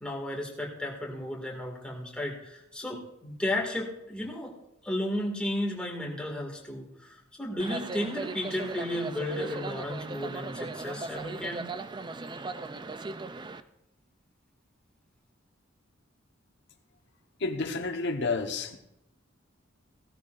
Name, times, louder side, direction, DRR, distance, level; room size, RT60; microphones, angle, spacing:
voice 1, 0.0-4.5 4.8-11.7, left 1 dB, 5° left, -3 dB, 2.2 m, -33 dB
sound 1, 7.6-13.6, right 3 dB, 25° right, 0.4 m, -38 dB
voice 2, 17.4-18.8, left 3 dB, 60° left, 4 dB, 1.1 m, -30 dB
17.5 x 12.5 x 2.6 m, 0.87 s
head